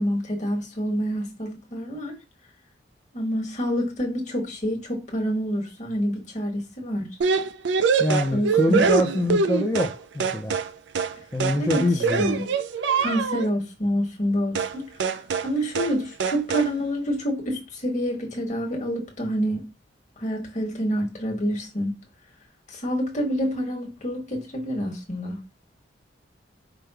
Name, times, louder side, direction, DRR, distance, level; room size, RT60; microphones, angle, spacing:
voice 1, 0.0-2.2 3.1-7.1 8.3-8.9 11.5-11.9 12.2-12.4 13.0-14.9 15.4-19.6 20.2-21.9 22.7-25.4, equal, 40° left, 1.3 m, -27 dB
sound 1, 7.2-10.0 10.2-10.7 11.0-11.2 11.4-13.5 14.6-14.8 15.0-15.5 15.8-16.0 16.2-16.7, right 5 dB, 70° right, 0.4 m, -24 dB
voice 2, 8.0-10.6 11.3-12.2, left 1 dB, 15° left, 0.5 m, -24 dB
5.1 x 2.2 x 4.6 m
head